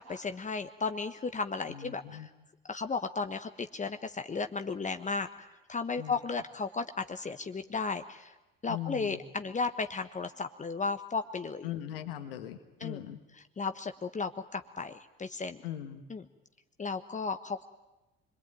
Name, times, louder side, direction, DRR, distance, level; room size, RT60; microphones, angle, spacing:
voice 1, 0.0-2.3 2.7-8.3 8.6-11.7 12.8-13.0 13.6-15.6 16.1-16.2 16.8-17.6, left 4 dB, 25° left, 8 dB, 1.3 m, -35 dB
voice 2, 1.7-2.3 6.0-6.2 8.7-9.2 11.6-13.2 15.6-16.0, left 11 dB, 75° left, 8 dB, 1.6 m, -40 dB
28.0 x 22.5 x 9.1 m, 1.0 s
figure-of-eight pair, 55°, 29 cm